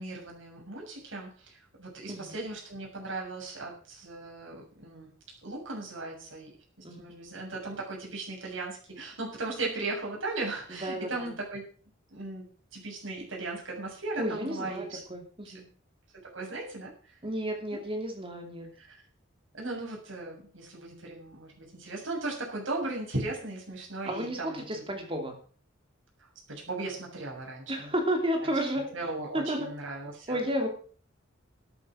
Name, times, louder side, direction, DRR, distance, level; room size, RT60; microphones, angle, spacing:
voice 1, 0.0-5.1 5.4-6.5 6.8-11.6 12.1-12.4 12.7-15.0 15.5-15.6 16.3-17.2 18.8-19.0 19.5-24.6 26.2-27.9 28.4-28.5 28.9-30.4, right 2 dB, 85° right, -2 dB, 7.3 m, -37 dB
voice 2, 10.7-11.3 14.2-15.7 17.2-18.7 24.0-25.4 27.7-28.9 29.3-29.7 30.3-30.7, equal, 30° right, 4 dB, 2.9 m, -32 dB
13.5 x 9.2 x 6.3 m, 0.43 s
head